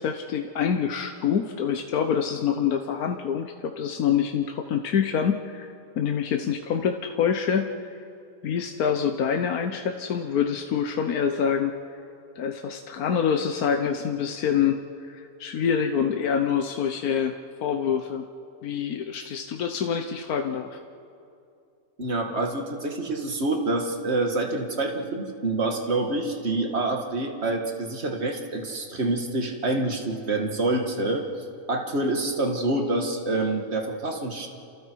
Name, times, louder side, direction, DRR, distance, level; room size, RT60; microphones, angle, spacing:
voice 1, 0.0-5.7 6.0-7.9 8.4-11.7 12.4-17.3 17.6-18.3 18.6-20.8, left 7 dB, 85° left, 5 dB, 1.4 m, -26 dB
voice 2, 22.0-31.3 31.7-34.5, right 2 dB, 45° right, 2 dB, 2.2 m, -27 dB
29.0 x 27.5 x 4.7 m, 2.5 s
omnidirectional pair, 1.5 m